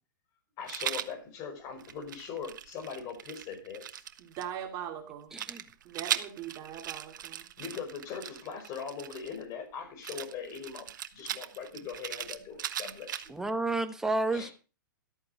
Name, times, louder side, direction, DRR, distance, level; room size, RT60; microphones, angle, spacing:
voice 1, 0.6-4.1 7.6-13.3 14.3-14.5, left 6 dB, 30° left, 5.0 m, -41 dB
Rattle, 0.7-1.1 1.8-4.4 5.3-9.4 10.0-13.5, right 10 dB, 65° right, 1.3 m, -38 dB
voice 2, 4.2-5.4 5.8-7.5, right 9 dB, 35° right, 2.7 m, -41 dB
voice 3, 5.3-5.6 13.3-14.5, right 2 dB, 5° right, 1.3 m, -30 dB
13.0 x 8.9 x 6.5 m
hypercardioid pair, 140°, 11 cm